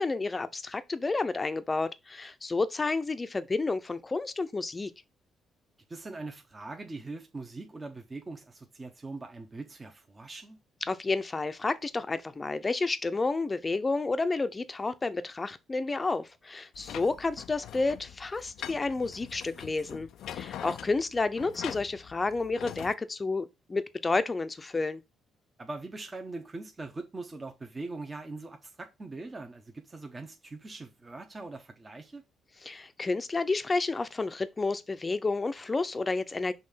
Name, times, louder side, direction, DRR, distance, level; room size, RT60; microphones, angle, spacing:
voice 1, 0.0-4.9 10.9-25.0 32.6-36.5, left 3 dB, 25° left, 0.7 m, -30 dB
voice 2, 5.9-10.6 16.8-16.9 25.6-32.2, right 3 dB, 25° right, 1.0 m, -42 dB
sound 1, 16.7-22.9, left 10 dB, 75° left, 0.4 m, -43 dB
5.5 x 3.3 x 5.6 m
cardioid pair, 90°, 0 cm